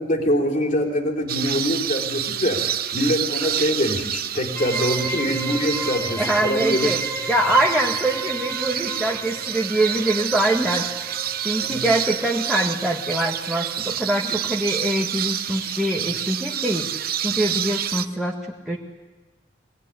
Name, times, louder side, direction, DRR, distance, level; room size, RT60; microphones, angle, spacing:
voice 1, 0.0-2.6 2.9-6.9 11.6-11.8 14.2-14.3, equal, 45° left, 2 dB, 3.6 m, -24 dB
sound 1, 1.3-18.1, right 10 dB, 55° right, 0.8 m, -28 dB
sound 2, 4.5-13.8, right 2 dB, 15° left, 3.3 m, -34 dB
voice 2, 6.2-7.0 7.3-16.9 17.2-18.3 18.7-18.8, right 1 dB, ahead, -3 dB, 1.8 m, -24 dB
25.0 x 19.5 x 9.9 m, 1.2 s
head